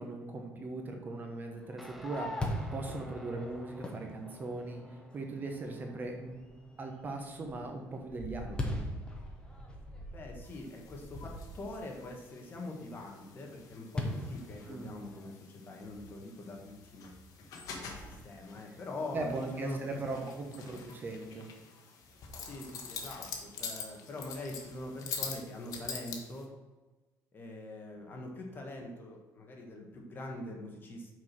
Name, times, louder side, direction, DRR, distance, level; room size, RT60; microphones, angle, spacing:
voice 1, 0.0-2.3 2.7-4.8 5.1-6.4 6.8-8.8 14.6-15.0 18.7-18.8 19.1-21.5, right 3 dB, 30° right, 3 dB, 1.0 m, -39 dB
Fireworks, 1.5-5.1 5.6-5.7 6.2-6.6 7.0-11.9 14.0-15.3, left 1 dB, 15° left, 1.0 m, -40 dB
Guitar, 1.8-10.7, equal, ahead, 0.5 m, -54 dB
voice 2, 10.1-17.1 17.7-20.3 22.3-26.5 27.3-31.1, left 2 dB, 30° left, 1 dB, 1.4 m, -44 dB
sound 1, 10.4-26.4, left 5 dB, 65° left, 1.2 m, -46 dB
6.1 x 4.7 x 6.0 m, 1.2 s
cardioid pair, 150°, 6 cm